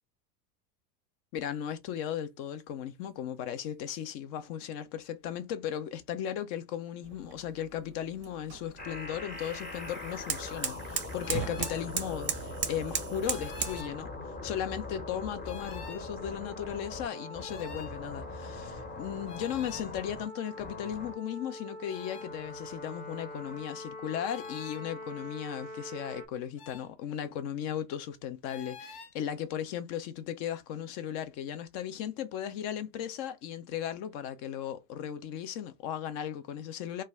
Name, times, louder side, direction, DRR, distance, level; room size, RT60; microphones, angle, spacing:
voice 1, 1.3-37.0, left 9 dB, 35° left, 0.4 m, -36 dB
sound 1, 7.0-13.8, right 8 dB, 25° right, 0.6 m, -37 dB
sound 2, 8.8-26.3, left 2 dB, 20° left, 0.8 m, -42 dB
sound 3, 11.2-11.9 13.2-14.0 15.4-16.1 17.4-17.9 19.3-19.9 21.8-22.3 24.2-24.8 26.6-26.9 28.5-29.1, left 5 dB, 70° left, 0.8 m, -47 dB
2.2 x 2.1 x 3.4 m
hypercardioid pair, 90°, 48 cm